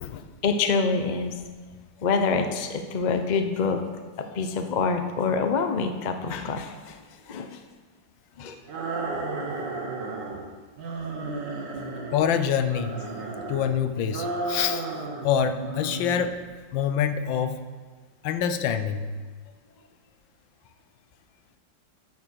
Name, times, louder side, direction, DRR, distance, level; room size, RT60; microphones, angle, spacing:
voice 1, 0.4-1.3 2.0-3.8 4.2-7.0 7.3-7.6 8.4-8.6, left 5 dB, 55° left, 6 dB, 0.5 m, -26 dB
sound 1, 8.7-10.4 10.8-12.2 12.6-13.7 14.1-15.3 15.5-16.3, right 3 dB, 70° right, 1.9 m, -33 dB
voice 2, 12.1-12.9 13.5-14.9 15.2-16.4 16.7-17.6 18.2-19.1, left 8 dB, 90° left, 10 dB, 1.4 m, -25 dB
9.6 x 7.5 x 6.2 m, 1.4 s
omnidirectional pair, 2.0 m